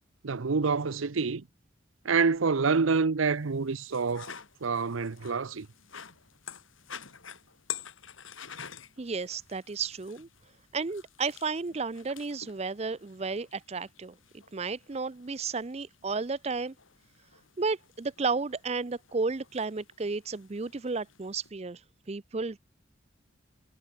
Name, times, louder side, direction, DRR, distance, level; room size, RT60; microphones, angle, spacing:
voice 1, 0.2-1.5 2.0-4.3 4.6-5.7, right 4 dB, 90° right, 0.7 m, -27 dB
sound 1, 3.2-21.5, left 8 dB, 90° left, 6.0 m, -49 dB
voice 2, 9.0-10.3 10.7-14.1 14.5-16.7 17.6-21.8 22.1-22.6, right 4 dB, 30° right, 0.5 m, -33 dB
head